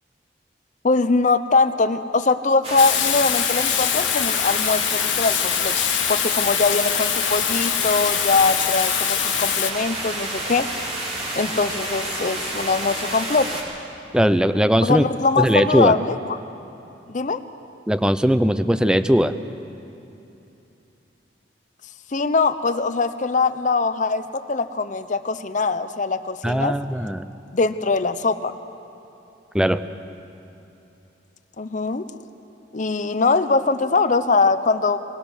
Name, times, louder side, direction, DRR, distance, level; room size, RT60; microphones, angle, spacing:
voice 1, 0.8-5.7 6.1-10.7 11.4-13.6 14.8-16.4 17.1-17.4 22.1-26.8 27.5-28.5 31.6-32.1 32.7-35.0, left 4 dB, 45° left, 10 dB, 0.7 m, -22 dB
sound 1, 2.6-13.6, right 1 dB, 35° right, 3.1 m, -29 dB
Water tap faucet / Sink (filling or washing), 2.8-9.7, left 14 dB, 85° left, 0.6 m, -24 dB
voice 2, 14.1-15.1 15.4-15.9 17.9-19.4 26.4-27.3 29.5-29.9, equal, 5° right, 12 dB, 0.5 m, -19 dB
21.0 x 19.0 x 6.4 m, 2.9 s
head